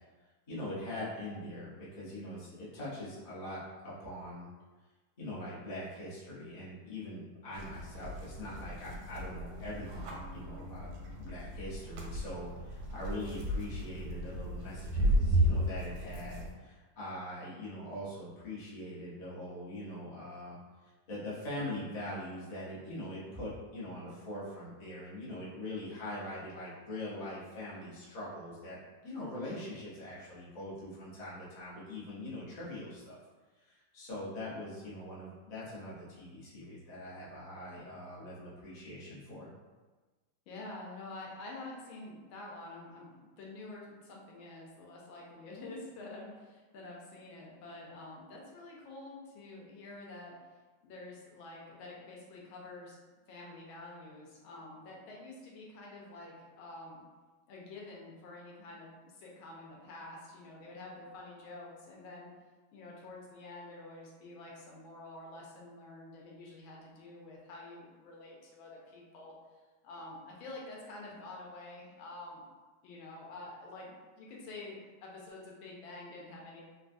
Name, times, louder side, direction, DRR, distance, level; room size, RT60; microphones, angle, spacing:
voice 1, 0.5-4.5 5.2-10.9 11.2-20.6 21.1-33.2 33.6-39.5, left 1 dB, 50° left, -9 dB, 0.4 m, -42 dB
sound 1, 7.5-16.5, right 1 dB, 85° right, 1.5 m, -34 dB
voice 2, 40.5-50.4 50.8-53.0 53.3-57.0 57.5-62.3 62.7-69.3 69.8-72.5 72.8-76.6, left 2 dB, 80° left, -2 dB, 1.4 m, -48 dB
3.7 x 2.3 x 2.5 m, 1.3 s
omnidirectional pair, 2.3 m